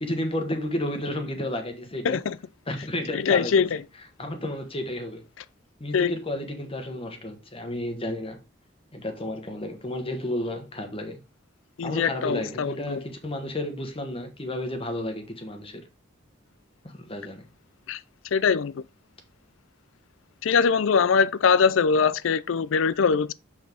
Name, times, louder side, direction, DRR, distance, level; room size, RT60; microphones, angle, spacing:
voice 1, 0.0-2.2 2.7-3.5 4.2-5.2 5.8-8.4 8.9-11.2 11.8-15.8 16.8-17.5, left 1 dB, 30° left, 1.3 m, -32 dB
voice 2, 2.0-2.4 3.1-3.8 5.9-6.1 11.8-13.0 17.9-18.0 18.3-18.8 20.4-23.3, left 6 dB, 75° left, 0.4 m, -22 dB
6.2 x 6.1 x 3.6 m
head